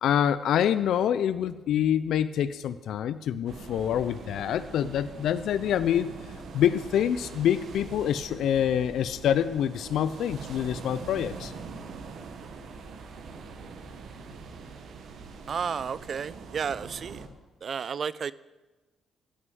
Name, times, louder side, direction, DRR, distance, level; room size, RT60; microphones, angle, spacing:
voice 1, 0.0-6.1 6.5-11.5, left 9 dB, 75° left, 14 dB, 0.4 m, -26 dB
sound 1, 3.5-17.3, right 4 dB, 70° right, 1.3 m, -43 dB
voice 2, 15.5-17.2 17.6-18.3, right 6 dB, 50° right, 19 dB, 0.4 m, -32 dB
14.5 x 6.2 x 7.8 m, 1.2 s
cardioid pair, 90°, 0 cm